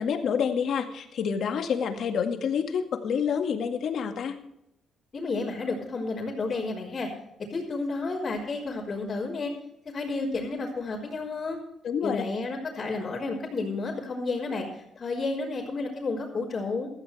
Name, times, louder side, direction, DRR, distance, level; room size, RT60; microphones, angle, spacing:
voice 1, 0.0-4.4 11.8-12.2, left 7 dB, 65° left, 6 dB, 2.0 m, -28 dB
voice 2, 5.1-7.1 7.5-9.5 9.8-11.6 12.0-16.9, left 3 dB, 40° left, -7 dB, 4.2 m, -31 dB
16.0 x 14.0 x 3.4 m, 0.82 s
cardioid pair, 90°, 0 cm